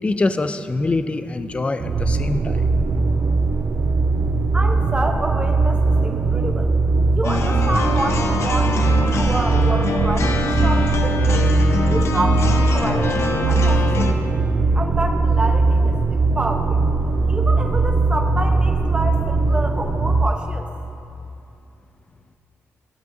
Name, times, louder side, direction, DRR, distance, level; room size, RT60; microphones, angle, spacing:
voice 1, 0.0-2.7, left 2 dB, 25° left, 10 dB, 0.4 m, -24 dB
sound 1, 1.8-20.3, right 3 dB, 50° right, 0.5 m, -19 dB
voice 2, 4.5-6.8 7.2-11.5 11.9-14.3 14.7-16.8 17.3-20.7, right 2 dB, 20° right, 3 dB, 0.9 m, -28 dB
sound 2, 7.2-14.1, left 3 dB, 65° left, 0.7 m, -24 dB
16.0 x 8.1 x 2.7 m, 2.6 s
cardioid pair, 80°, 5 cm